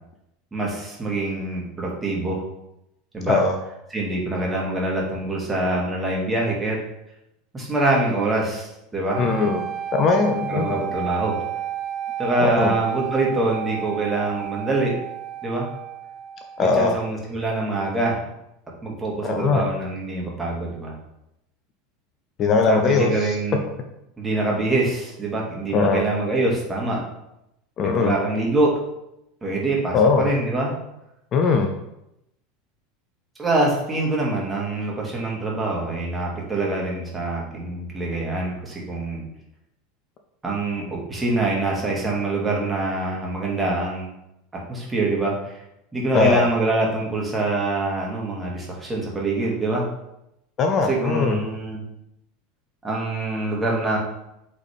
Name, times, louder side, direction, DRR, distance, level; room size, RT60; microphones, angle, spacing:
voice 1, 0.5-2.4 3.1-3.4 3.9-6.8 7.5-9.2 10.5-11.4 12.2-14.9 15.4-15.7 16.6-18.2 18.8-21.0 22.7-23.7 24.2-27.0 27.9-28.7 29.4-30.7 33.4-39.3 40.4-44.1 44.7-45.6 45.9-49.9 50.8-51.8 52.8-54.0, right 2 dB, 15° right, -3 dB, 2.3 m, -25 dB
sound 1, 9.1-17.2, right 10 dB, 45° right, 0.8 m, -32 dB
voice 2, 9.2-9.6 9.9-10.7 12.4-12.7 16.6-17.0 19.2-19.6 22.4-23.3 25.7-26.0 27.8-28.1 29.9-30.3 31.3-31.7 46.1-46.5 50.6-51.4, left 4 dB, 35° left, 4 dB, 0.7 m, -20 dB
8.1 x 4.2 x 3.6 m, 0.85 s
figure-of-eight pair, 80°, 0 cm